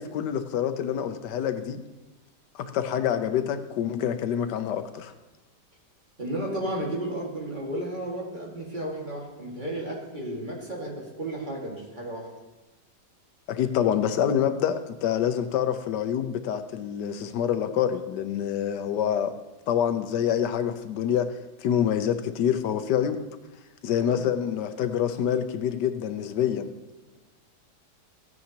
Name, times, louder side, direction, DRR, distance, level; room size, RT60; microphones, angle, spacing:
voice 1, 0.0-1.8 2.5-5.1 13.5-19.3 19.7-23.2 23.8-26.7, left 9 dB, 85° left, 9 dB, 1.3 m, -26 dB
voice 2, 6.2-12.3 24.0-24.3, right 1 dB, 30° right, -2 dB, 2.1 m, -33 dB
15.5 x 9.4 x 2.9 m, 1.1 s
omnidirectional pair, 1.8 m